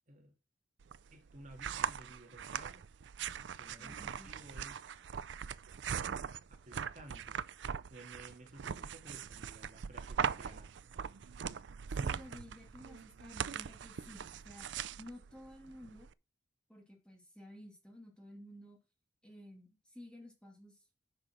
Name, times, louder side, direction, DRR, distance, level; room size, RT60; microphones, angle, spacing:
sound 1, 0.8-16.1, right 7 dB, 75° right, 0.4 m, -41 dB
voice 1, 1.1-2.9 3.6-4.9 6.5-7.5 7.9-10.7, right 1 dB, 40° right, 2.2 m, -55 dB
voice 2, 3.8-4.3 12.0-14.7 15.0-16.1 16.7-18.8 19.2-20.8, equal, 5° left, 2.6 m, -53 dB
10.0 x 5.3 x 6.0 m
head